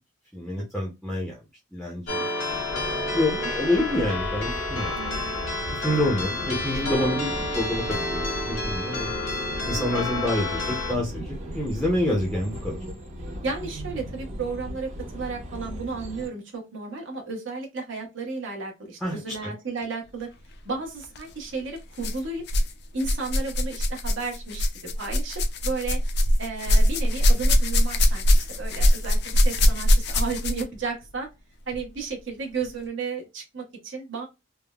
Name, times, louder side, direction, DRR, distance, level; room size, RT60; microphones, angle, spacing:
voice 1, 0.3-1.4 1.7-2.7 3.1-4.9 5.7-9.1 9.7-12.8 19.0-19.5, left 1 dB, ahead, 0.6 m, -27 dB
sound 1, 2.1-10.9, left 2 dB, 80° left, 1.2 m, -30 dB
sound 2, 2.5-16.3, equal, 40° right, 0.9 m, -36 dB
voice 2, 4.9-5.4 13.4-20.3 20.6-22.4 22.9-26.0 26.4-31.3 31.7-34.3, right 4 dB, 70° right, 1.0 m, -33 dB
sound 3, 21.0-21.2 22.0-22.7 23.0-30.8 31.7-31.8 32.6-32.7, left 1 dB, 55° left, 0.5 m, -22 dB
3.4 x 2.1 x 2.2 m
head